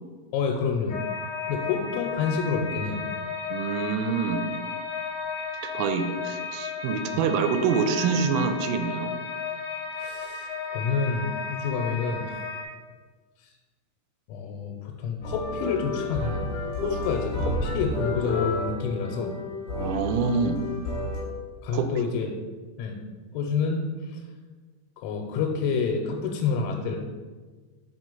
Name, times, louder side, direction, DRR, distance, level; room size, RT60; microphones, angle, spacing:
voice 1, 0.3-1.0 1.5-3.0 9.9-12.5 13.4-13.5 14.3-16.4 16.8-19.3 21.6-22.3 22.8-23.0 23.3-24.2 25.0-27.0, left 5 dB, 90° left, 1 dB, 3.3 m, -28 dB
sound 1, 0.9-12.6, left 5 dB, 75° left, 2.7 m, -34 dB
voice 2, 3.5-4.5 5.7-9.1 19.8-20.6 21.7-21.9, right 5 dB, 85° right, 7 dB, 3.2 m, -26 dB
sound 2, 15.2-21.2, left 2 dB, 60° left, 2.4 m, -30 dB
7.5 x 3.0 x 5.3 m, 1.4 s
omnidirectional pair, 6.0 m